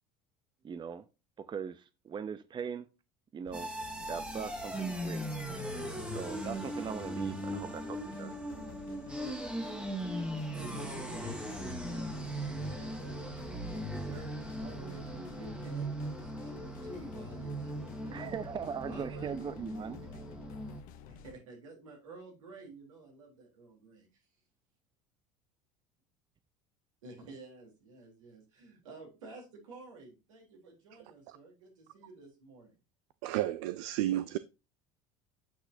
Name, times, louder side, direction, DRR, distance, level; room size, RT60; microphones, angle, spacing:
voice 1, 0.6-1.0 1.4-2.9 3.3-3.7 4.1-5.2 6.0-8.3 18.1-20.0, right 7 dB, 30° right, 0.6 m, -40 dB
sound 1, 3.5-21.3, left 9 dB, 60° left, 0.8 m, -52 dB
sound 2, 3.5-20.8, right 1 dB, 5° right, 1.6 m, -39 dB
voice 2, 10.5-14.3 14.6-18.3 18.8-19.4 19.8-19.9 21.1-24.2 27.0-32.7, right 3 dB, 90° right, 3.5 m, -50 dB
voice 3, 33.2-34.4, right 14 dB, 70° right, 0.4 m, -32 dB
8.5 x 5.8 x 2.7 m
hypercardioid pair, 85°, 16 cm